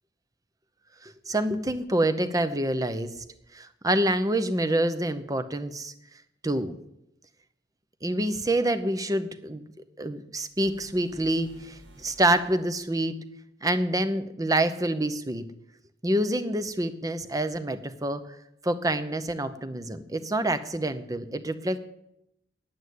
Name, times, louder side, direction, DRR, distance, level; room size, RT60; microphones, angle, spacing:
voice 1, 1.0-3.1 3.5-5.9 6.4-6.7 8.0-9.6 10.0-13.2 13.6-15.5 16.0-18.4 18.6-21.8, right 1 dB, 20° right, 12 dB, 0.7 m, -27 dB
sound 1, 10.5-12.9, equal, 65° right, 2.7 m, -53 dB
9.5 x 8.8 x 9.4 m, 0.81 s
head